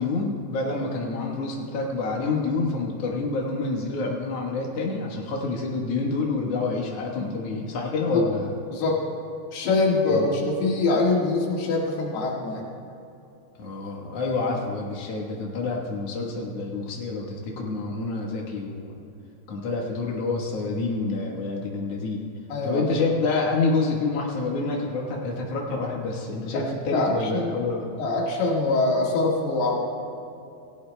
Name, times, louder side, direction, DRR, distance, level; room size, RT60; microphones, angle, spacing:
voice 1, 0.0-8.5 10.1-10.3 13.6-19.0 19.5-22.2 22.6-27.9, left 3 dB, 90° left, -1 dB, 1.3 m, -28 dB
voice 2, 8.7-9.0 9.5-12.7 22.5-22.9 26.5-26.6 26.9-27.6 28.0-29.8, left 3 dB, 70° left, -2 dB, 3.5 m, -24 dB
18.0 x 17.0 x 2.2 m, 2.8 s
omnidirectional pair, 4.9 m